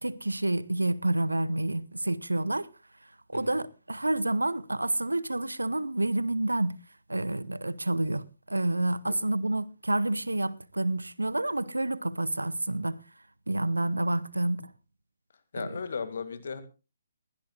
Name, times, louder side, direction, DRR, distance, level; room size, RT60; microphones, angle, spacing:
voice 1, 0.0-2.7 3.3-6.7 7.1-13.0 13.5-14.7 15.6-15.8, right 2 dB, 80° right, 0.9 m, -29 dB
voice 2, 15.5-16.6, left 5 dB, 55° left, 2.1 m, -36 dB
21.5 x 16.5 x 2.4 m
figure-of-eight pair, 135°, 0 cm